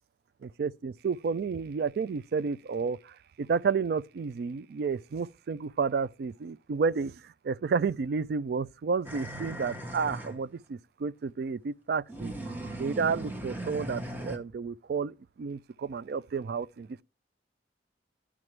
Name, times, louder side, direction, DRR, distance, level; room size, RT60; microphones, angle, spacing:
voice 1, 0.4-12.3 12.8-17.0, right 5 dB, 55° right, 0.3 m, -31 dB
sound 1, 9.1-10.4 12.1-14.4, right 1 dB, 10° right, 0.9 m, -38 dB
12.0 x 5.0 x 3.2 m
head